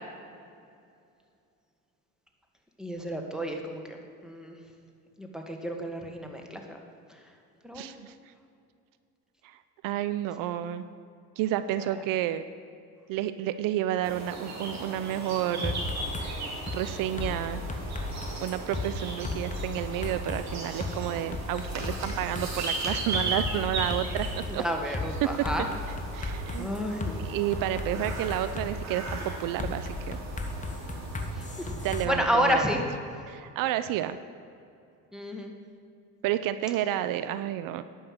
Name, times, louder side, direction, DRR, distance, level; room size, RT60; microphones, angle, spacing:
voice 1, 2.8-4.5 5.2-6.8 7.6-7.8 24.5-25.7 26.6-27.3 31.3-31.7 32.0-32.8 35.1-35.5, equal, ahead, 2 dB, 1.7 m, -30 dB
voice 2, 7.7-8.2 9.4-10.9 11.4-12.4 13.1-15.8 16.7-17.6 18.4-24.3 24.5-25.3 26.1-26.7 27.2-30.2 31.8-32.6 33.3-34.2 36.2-37.8, right 12 dB, 70° right, 12 dB, 0.5 m, -30 dB
sound 1, 14.0-32.0, right 2 dB, 50° right, 2.5 m, -38 dB
sound 2, 15.6-16.3 16.7-16.8 17.2-18.9 19.2-20.4 20.8-20.9 21.3-24.5 24.9-25.1 25.4-27.1 27.5-28.7 29.1-29.2 29.6-32.0, left 2 dB, 20° left, 1.3 m, -34 dB
11.0 x 5.6 x 7.9 m, 2.4 s
supercardioid pair, 80°, 34 cm